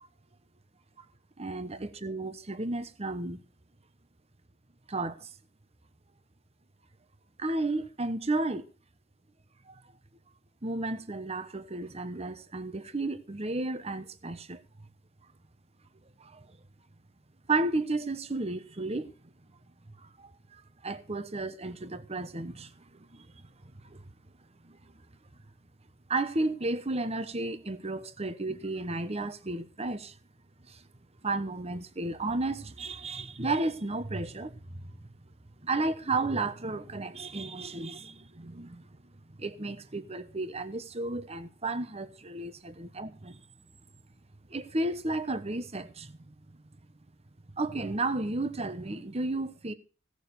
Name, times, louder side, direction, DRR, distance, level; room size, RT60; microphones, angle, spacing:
voice 1, 1.4-3.4 4.9-5.3 7.4-8.6 9.7-9.8 10.6-14.6 16.2-16.4 17.5-19.1 20.0-23.3 23.8-24.0 24.6-24.8 26.1-30.2 30.7-30.8 31.2-34.8 35.6-38.8 39.4-43.4 44.5-46.3 47.5-49.7, right 2 dB, 30° right, 1.0 m, -33 dB
17.0 x 6.6 x 6.8 m
head